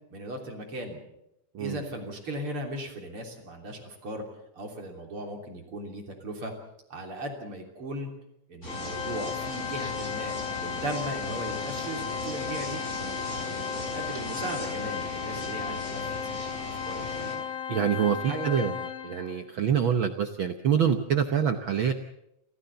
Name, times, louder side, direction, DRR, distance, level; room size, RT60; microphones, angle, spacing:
voice 1, 0.1-1.0 1.6-4.2 4.6-6.5 6.9-8.1 8.5-12.8 13.3-17.4 18.2-18.7, right 1 dB, 45° right, 2 dB, 3.9 m, -38 dB
sound 1, 8.6-17.4, left 1 dB, 20° left, 5.7 m, -38 dB
Organ, 8.7-19.4, left 8 dB, 70° left, 0.7 m, -35 dB
voice 2, 17.7-18.7 19.0-21.9, right 8 dB, 90° right, 7 dB, 1.1 m, -26 dB
28.5 x 14.5 x 7.0 m, 0.85 s
omnidirectional pair, 3.6 m